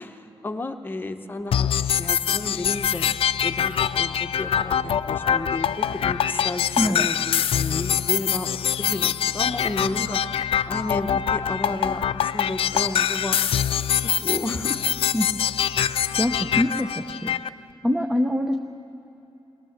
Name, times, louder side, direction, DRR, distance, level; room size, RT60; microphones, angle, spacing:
voice 1, 0.0-1.7 2.0-3.1 3.4-8.5 8.8-10.2 10.7-13.4 14.0-14.8, left 2 dB, 20° left, 7 dB, 1.0 m, -32 dB
sound 1, 1.5-17.5, left 9 dB, 75° left, 0.5 m, -24 dB
voice 2, 6.8-7.1 15.1-15.3 16.2-16.9 17.2-17.4 17.8-18.6, left 1 dB, 10° right, 4 dB, 0.8 m, -24 dB
21.5 x 18.5 x 7.3 m, 3.0 s
wide cardioid pair, 155°, 10 cm